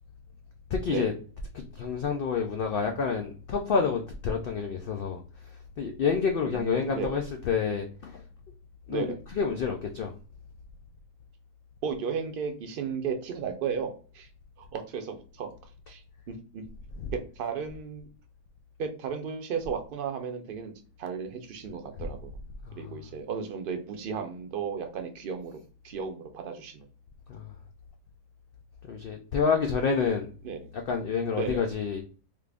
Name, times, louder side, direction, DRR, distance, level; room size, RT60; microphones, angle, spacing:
voice 1, 0.7-1.1 1.5-8.2 8.9-10.1 17.0-17.1 22.6-23.0 27.3-27.5 28.8-30.3 30.7-32.0, left 5 dB, 80° left, 3 dB, 0.5 m, -29 dB
voice 2, 6.4-7.2 8.9-9.2 11.8-14.3 14.6-15.5 15.9-16.0 16.3-16.6 17.1-18.1 18.8-20.7 21.0-22.3 22.8-26.9 30.4-30.6 31.3-31.6, right 6 dB, 55° right, 5 dB, 0.6 m, -34 dB
3.2 x 2.5 x 3.3 m, 0.39 s
omnidirectional pair, 1.5 m